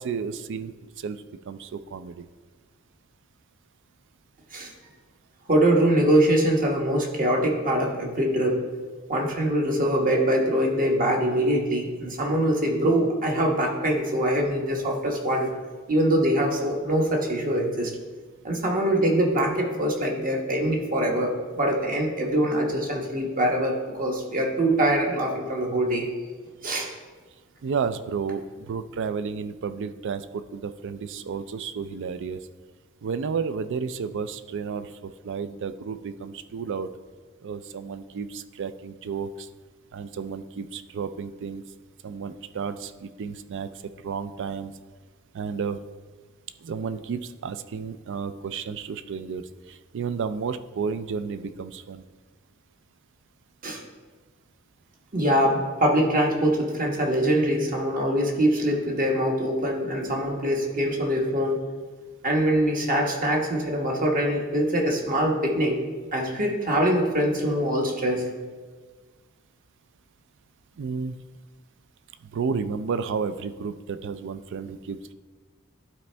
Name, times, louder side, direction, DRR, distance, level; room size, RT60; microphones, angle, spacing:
voice 1, 0.0-2.3 27.6-32.5 33.0-36.9 37.4-39.5 39.9-41.6 42.0-44.7 45.3-45.8 46.6-52.0 70.8-71.2 72.2-75.1, right 5 dB, 60° right, 12 dB, 0.4 m, -32 dB
voice 2, 5.5-8.6 9.1-15.5 15.9-17.9 18.4-26.1 26.6-26.9 53.6-53.8 55.1-61.6 62.2-65.8 66.1-68.2, right 1 dB, 40° right, 0 dB, 1.2 m, -23 dB
12.0 x 4.2 x 3.4 m, 1.4 s
head